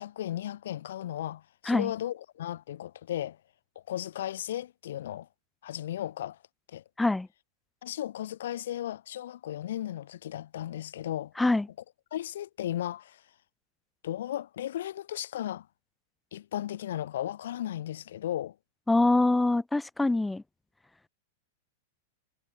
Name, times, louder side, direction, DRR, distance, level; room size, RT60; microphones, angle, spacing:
voice 1, 0.0-3.4 3.7-5.3 5.6-6.4 6.7-6.8 7.8-11.3 12.1-13.2 14.0-15.7 16.3-18.5, left 12 dB, 70° left, 4.6 m, -35 dB
voice 2, 18.9-20.4, left 2 dB, 5° left, 1.4 m, -24 dB
hypercardioid pair, 105°, 0 cm